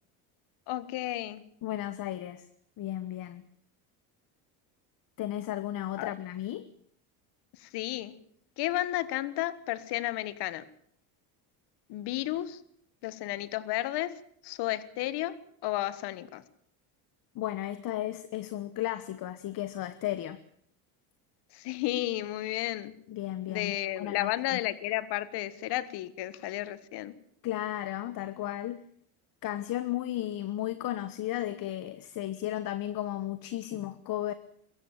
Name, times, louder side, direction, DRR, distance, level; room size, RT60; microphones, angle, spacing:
voice 1, 0.7-1.4 6.0-6.1 7.7-8.1 8.6-10.6 11.9-12.6 13.0-14.1 14.4-15.3 15.6-16.4 21.6-22.9 23.5-27.1, left 15 dB, 65° left, 16 dB, 1.6 m, -32 dB
voice 2, 1.6-2.5 2.8-3.4 5.2-6.7 17.3-20.4 23.1-24.6 27.4-28.8 29.4-34.3, left 13 dB, 50° left, 14 dB, 1.2 m, -34 dB
23.0 x 14.5 x 8.8 m, 0.66 s
cardioid pair, 115°, 42 cm